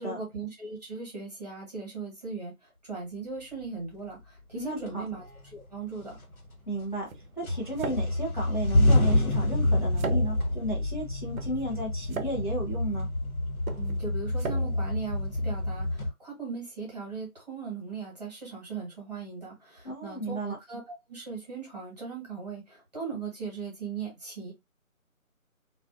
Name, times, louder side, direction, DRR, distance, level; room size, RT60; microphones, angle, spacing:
voice 1, 0.0-5.2 5.5-6.2 13.7-20.4 20.7-20.8 21.1-24.5, right 4 dB, 30° right, 1.1 m, -38 dB
sound 1, 4.2-4.3 4.9-5.6 6.0-7.1 7.4-16.1, left 1 dB, 75° left, 1.0 m, -27 dB
voice 2, 4.5-5.0 6.7-7.1 7.4-13.1 19.8-20.6, right 1 dB, 35° left, 0.6 m, -34 dB
sound 2, 6.1-15.9, right 4 dB, 70° right, 0.6 m, -41 dB
2.3 x 2.3 x 2.4 m
figure-of-eight pair, 170°, 43 cm